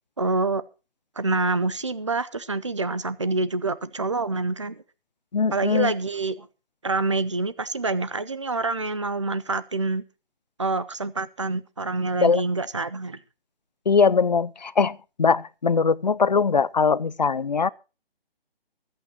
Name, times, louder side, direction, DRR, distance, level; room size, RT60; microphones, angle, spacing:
voice 1, 0.2-0.6 1.2-4.8 5.5-6.5 6.8-10.0 10.6-13.2, right 3 dB, 30° right, 0.6 m, -26 dB
voice 2, 5.3-5.9 12.2-12.4 13.9-17.7, left 5 dB, 50° left, 0.5 m, -21 dB
24.5 x 8.6 x 2.9 m
hypercardioid pair, 175°, 29 cm